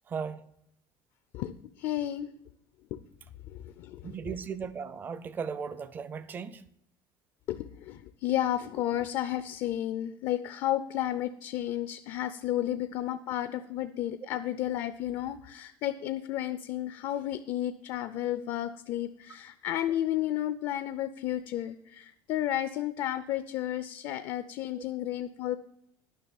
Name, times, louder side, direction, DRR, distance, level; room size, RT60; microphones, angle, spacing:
voice 1, 0.1-0.4 4.0-6.6 24.1-24.2, right 6 dB, 20° right, 0.5 m, -37 dB
voice 2, 1.3-2.3 2.9-3.0 3.5-4.1 7.5-25.6, left 12 dB, 45° left, 0.5 m, -32 dB
10.5 x 6.0 x 7.0 m
cardioid pair, 175°, 10 cm